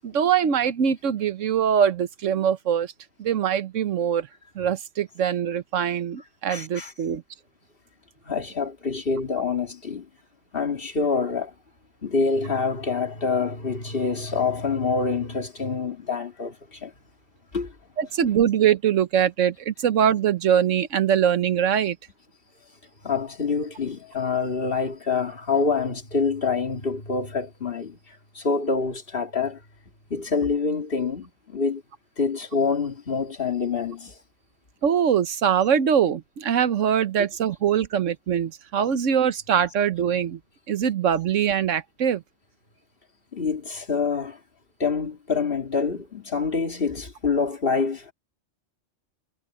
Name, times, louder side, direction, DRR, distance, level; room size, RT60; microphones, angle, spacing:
voice 1, 0.0-2.9 3.2-4.3 4.5-7.2 18.0-22.0 34.8-40.4 40.7-42.2, right 8 dB, 85° right, 1.3 m, -23 dB
voice 2, 6.5-6.9 8.2-10.1 10.5-11.5 12.0-16.9 17.5-17.8 23.0-29.6 30.1-31.8 32.2-34.2 43.3-44.4 44.8-48.1, left 4 dB, 50° left, 2.6 m, -26 dB
omnidirectional pair, 1.3 m